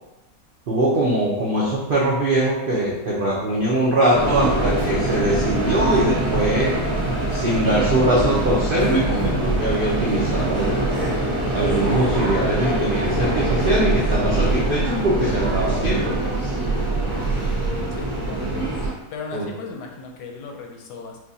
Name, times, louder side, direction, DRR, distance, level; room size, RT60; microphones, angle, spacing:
voice 1, 0.7-6.8 7.3-10.8 11.5-16.2 19.3-19.5, right 1 dB, 80° right, -6 dB, 0.4 m, -22 dB
sound 1, 4.1-18.9, right 2 dB, 15° right, 1.1 m, -23 dB
voice 2, 17.9-18.5 19.1-21.2, left 4 dB, 85° left, 1 dB, 1.2 m, -37 dB
4.5 x 2.2 x 2.7 m, 0.97 s
omnidirectional pair, 1.7 m